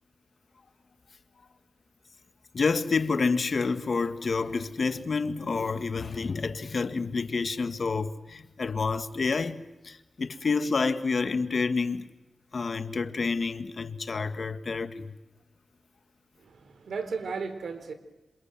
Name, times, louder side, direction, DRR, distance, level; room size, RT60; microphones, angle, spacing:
voice 1, 2.5-12.1 12.5-15.1, left 4 dB, 55° left, 1.9 m, -29 dB
voice 2, 16.4-17.9, right 5 dB, 80° right, 3.8 m, -35 dB
28.0 x 27.5 x 7.7 m
cardioid pair, 80°, 0 cm